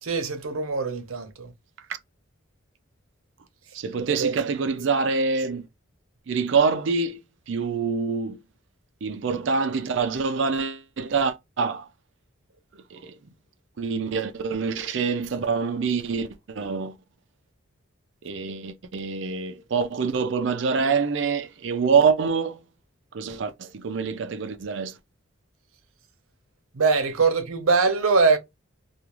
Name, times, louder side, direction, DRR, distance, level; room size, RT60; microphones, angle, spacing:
voice 1, 0.0-1.5 4.1-4.3 26.7-28.4, right 4 dB, 90° right, 0.7 m, -22 dB
voice 2, 3.7-5.7 6.3-7.2 7.5-8.4 9.0-11.9 12.9-13.2 13.8-17.0 18.2-22.6 23.1-24.9, right 5 dB, 60° right, 0.4 m, -25 dB
2.4 x 2.4 x 2.9 m
head